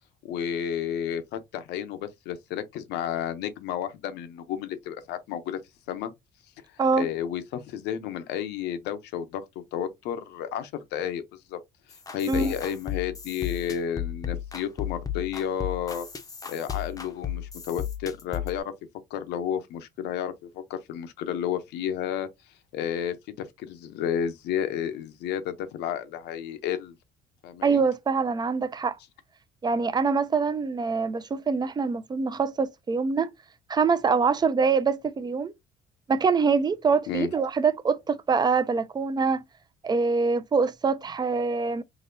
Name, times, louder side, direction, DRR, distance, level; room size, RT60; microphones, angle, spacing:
voice 1, 0.2-5.6 5.9-6.1 7.0-9.4 9.7-11.6 12.1-16.1 16.5-18.7 19.1-22.3 22.7-27.0 27.4-27.8 37.1-37.3, left 9 dB, 85° left, 0.8 m, -31 dB
sound 1, 11.9-18.6, left 9 dB, 20° left, 0.6 m, -34 dB
voice 2, 27.6-29.0 29.6-33.3 33.7-35.5 36.1-39.4 39.8-41.8, right 5 dB, 25° right, 0.4 m, -24 dB
4.0 x 2.8 x 2.7 m
cardioid pair, 110°, 17 cm